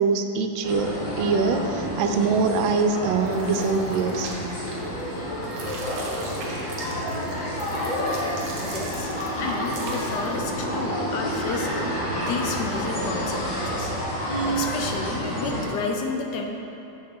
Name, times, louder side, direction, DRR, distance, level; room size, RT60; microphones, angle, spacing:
voice 1, 0.0-4.3, right 4 dB, 85° right, 6 dB, 1.3 m, -23 dB
sound 1, 0.6-15.6, equal, 25° left, 1.3 m, -29 dB
sound 2, 3.2-5.1 5.4-10.4, right 2 dB, 65° right, 1.6 m, -41 dB
voice 2, 8.7-9.1 9.4-12.0 12.3-13.9 14.4-16.4, left 4 dB, 70° left, 2 dB, 1.2 m, -31 dB
7.6 x 6.3 x 4.3 m, 2.9 s
omnidirectional pair, 2.1 m